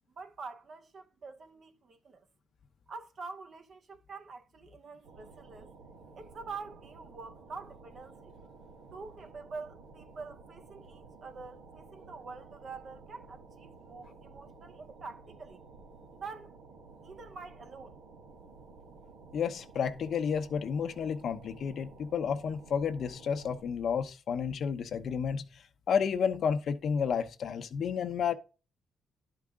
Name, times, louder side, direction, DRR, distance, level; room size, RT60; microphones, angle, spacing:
voice 1, 0.1-2.3 2.9-5.7 6.2-8.4 8.9-15.6 16.1-16.5 17.0-18.0, right 4 dB, 50° right, 0.9 m, -46 dB
sound 1, 5.0-23.6, right 4 dB, 90° right, 1.5 m, -53 dB
voice 2, 19.3-28.3, left 7 dB, 60° left, 0.8 m, -31 dB
11.0 x 4.8 x 3.6 m
cardioid pair, 90°, 0 cm